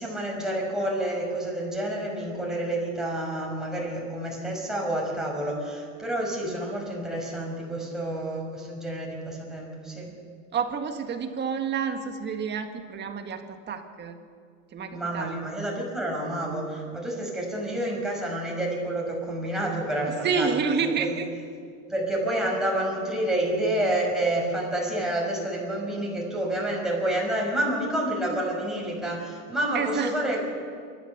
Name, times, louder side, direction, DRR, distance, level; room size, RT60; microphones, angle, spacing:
voice 1, 0.0-10.1 14.9-20.5 21.0-21.2 21.9-30.5, right 1 dB, ahead, -3 dB, 5.6 m, -29 dB
voice 2, 10.5-14.2 14.7-15.3 20.2-21.3 29.7-30.1, right 6 dB, 25° right, 6 dB, 1.7 m, -29 dB
28.5 x 13.5 x 6.9 m, 2.1 s
supercardioid pair, 140°, 40 cm